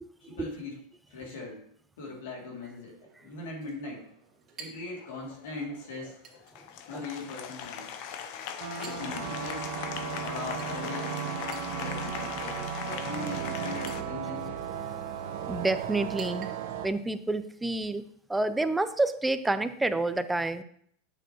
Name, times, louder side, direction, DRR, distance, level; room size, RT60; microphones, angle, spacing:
voice 1, 0.2-0.8 1.1-1.7 2.0-4.1 4.6-6.2 6.9-7.9 8.8-9.8 10.1-11.2 11.6-14.6, left 3 dB, 80° left, -2 dB, 2.7 m, -40 dB
Chink clink, 2.0-17.0, right 6 dB, 40° right, 1.9 m, -55 dB
Applause, 4.9-14.0, left 8 dB, 60° left, 0.7 m, -40 dB
sound 1, 8.6-16.9, right 8 dB, 70° right, 0.8 m, -35 dB
voice 2, 15.5-16.5 16.8-18.0 18.3-20.6, right 2 dB, 10° right, 12 dB, 0.5 m, -28 dB
8.7 x 6.9 x 3.0 m, 0.64 s
supercardioid pair, 115°, 0 cm